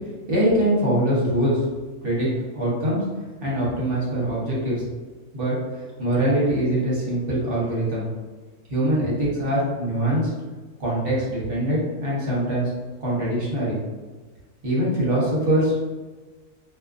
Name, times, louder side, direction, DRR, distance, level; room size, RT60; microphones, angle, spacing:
voice 1, 0.3-1.7 2.0-3.0 3.4-4.8 5.3-8.1 8.7-10.3 10.8-12.7 13.0-13.8 14.6-15.8, right 1 dB, 50° right, -6 dB, 0.9 m, -23 dB
2.4 x 2.4 x 2.4 m, 1.3 s
omnidirectional pair, 1.4 m